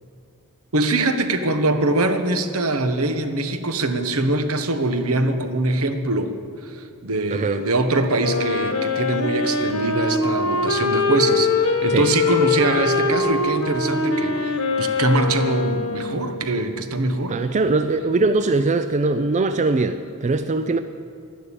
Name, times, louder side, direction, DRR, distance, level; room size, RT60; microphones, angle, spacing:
voice 1, 0.7-6.3 6.6-17.3, right 2 dB, 75° right, 7 dB, 1.2 m, -23 dB
voice 2, 7.3-7.6 11.9-12.1 17.3-20.8, right 3 dB, 35° right, 10 dB, 0.4 m, -21 dB
Wind instrument woodwind instrument, 8.1-16.6, left 3 dB, 70° left, 1.4 m, -23 dB
12.0 x 11.5 x 8.6 m, 2.3 s
head